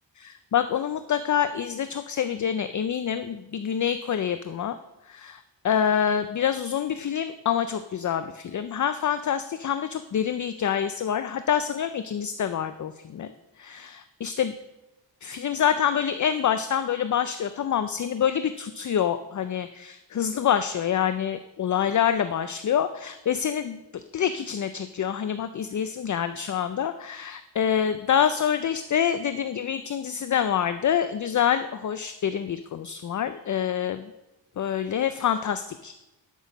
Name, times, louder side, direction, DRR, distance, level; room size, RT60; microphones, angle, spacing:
voice 1, 0.2-4.8 5.1-13.3 13.6-14.5 15.2-23.8 24.1-34.1 34.6-35.9, left 8 dB, 45° left, 11 dB, 0.4 m, -26 dB
12.0 x 6.2 x 5.2 m, 0.99 s
wide cardioid pair, 120°, 44 cm